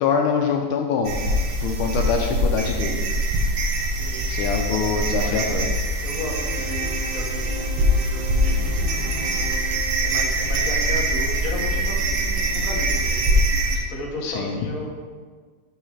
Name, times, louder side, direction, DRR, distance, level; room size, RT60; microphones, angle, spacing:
voice 1, 0.0-3.0 4.3-5.7 13.7-13.8 14.2-14.5, left 6 dB, 80° left, 2 dB, 1.5 m, -24 dB
sound 1, 1.0-13.8, right 1 dB, 85° right, 1.8 m, -23 dB
voice 2, 3.9-4.6 5.2-5.6 6.0-9.2 10.0-14.9, left 1 dB, 45° left, -2 dB, 1.4 m, -35 dB
sound 2, 6.2-11.4, right 2 dB, 20° right, 0.9 m, -38 dB
8.2 x 3.2 x 6.3 m, 1.5 s
omnidirectional pair, 2.4 m